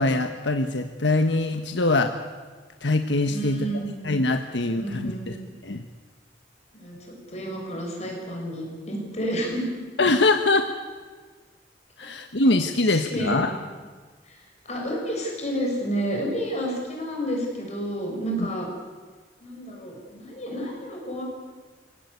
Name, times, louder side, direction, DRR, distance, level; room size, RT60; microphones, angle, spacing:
voice 1, 0.0-2.1 2.8-3.6 4.0-5.4 5.6-5.8 10.0-10.7 12.0-13.5 18.4-18.5, left 2 dB, 85° left, 6 dB, 1.5 m, -23 dB
voice 2, 3.3-3.9 4.7-5.3 6.7-9.7 12.0-12.1 13.1-13.5 14.3-14.4 14.6-18.7 19.4-21.2, equal, 40° left, 0 dB, 6.6 m, -30 dB
27.5 x 18.0 x 9.7 m, 1.5 s
head